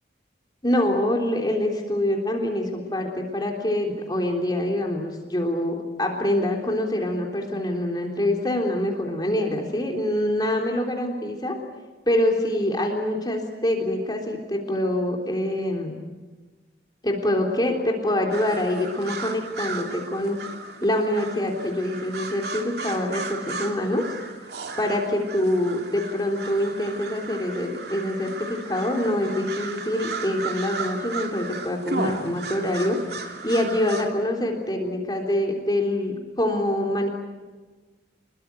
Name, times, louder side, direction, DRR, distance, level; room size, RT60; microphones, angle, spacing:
voice 1, 0.6-11.6 12.1-16.0 17.0-20.4 20.8-24.0 24.8-33.2 33.4-37.1, left 1 dB, 20° left, 1 dB, 3.5 m, -25 dB
sound 1, 18.3-34.1, right 3 dB, 60° right, 2.9 m, -35 dB
27.5 x 22.0 x 9.3 m, 1.3 s
head